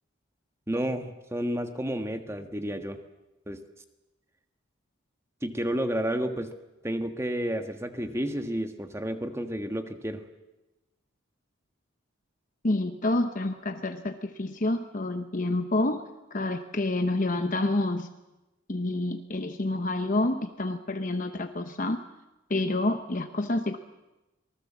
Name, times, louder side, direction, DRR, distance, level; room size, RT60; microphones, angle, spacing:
voice 1, 0.7-3.0 3.5-3.6 5.4-6.5 6.8-10.2, equal, 15° right, 7 dB, 1.5 m, -31 dB
voice 2, 12.6-16.0 16.3-18.1 18.7-22.0 22.5-23.8, left 2 dB, 40° left, 7 dB, 0.9 m, -28 dB
25.5 x 19.5 x 7.4 m, 1.0 s
head